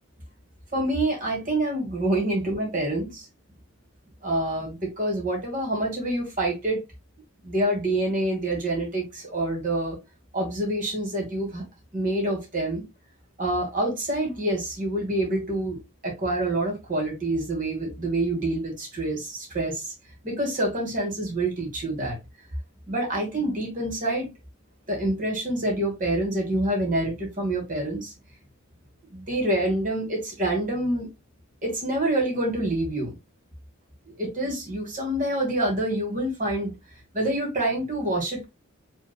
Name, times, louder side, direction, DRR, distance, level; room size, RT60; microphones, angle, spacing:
voice 1, 0.7-3.3 4.2-6.8 7.4-10.0 10.3-11.6 11.9-12.8 13.4-15.8 16.0-19.9 20.2-22.2 22.9-24.3 24.9-28.1 29.1-31.1 31.6-33.1 34.2-36.7 37.1-38.4, right 1 dB, 40° right, 2.1 m, -27 dB
5.4 x 3.3 x 2.3 m
head